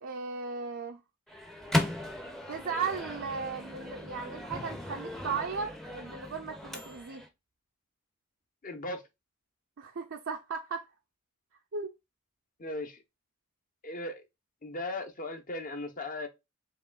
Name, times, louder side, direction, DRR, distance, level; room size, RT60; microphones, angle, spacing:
voice 1, 0.0-1.0 2.5-7.2 9.8-10.8 11.7-11.9, right 5 dB, 65° right, 0.5 m, -36 dB
Microwave oven, 1.3-7.3, left 1 dB, ahead, 0.6 m, -36 dB
voice 2, 8.6-9.0 12.6-13.0 13.8-14.2 14.6-16.3, left 2 dB, 40° left, 0.8 m, -37 dB
4.7 x 3.1 x 2.3 m
head